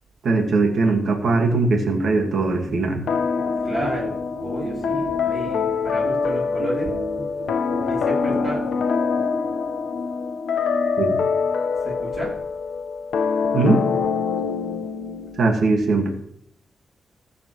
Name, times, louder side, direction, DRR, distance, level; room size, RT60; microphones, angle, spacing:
voice 1, 0.2-3.0 11.0-11.2 13.5-13.9 15.4-16.1, right 3 dB, 55° right, 3 dB, 1.7 m, -20 dB
sound 1, 1.5-9.0, right 2 dB, 80° right, 3.7 m, -36 dB
sound 2, 3.1-15.5, left 5 dB, 90° left, 1.0 m, -24 dB
voice 2, 3.6-4.1 4.4-6.9 7.9-8.6 11.8-12.3, right 1 dB, 25° right, -6 dB, 3.1 m, -31 dB
20.5 x 7.2 x 3.1 m, 0.70 s
wide cardioid pair, 175°, 0 cm